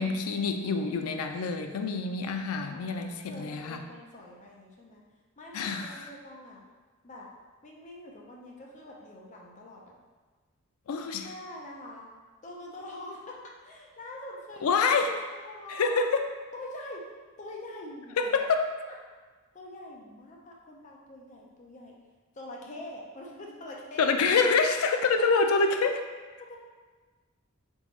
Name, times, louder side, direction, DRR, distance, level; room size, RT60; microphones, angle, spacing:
voice 1, 0.0-3.8 5.5-6.1 10.9-11.3 14.6-15.2 15.7-16.3 18.2-18.7 24.0-26.0, left 4 dB, 85° left, 6 dB, 0.4 m, -26 dB
voice 2, 2.7-5.0 5.4-6.6 7.0-7.3 7.6-9.9 11.0-12.1 12.4-14.9 15.1-16.1 16.5-17.0 17.4-18.3 19.5-21.9 22.3-24.2 24.7-25.6 26.4-26.6, left 1 dB, 35° left, -2 dB, 0.5 m, -44 dB
3.8 x 3.6 x 3.1 m, 1.4 s
head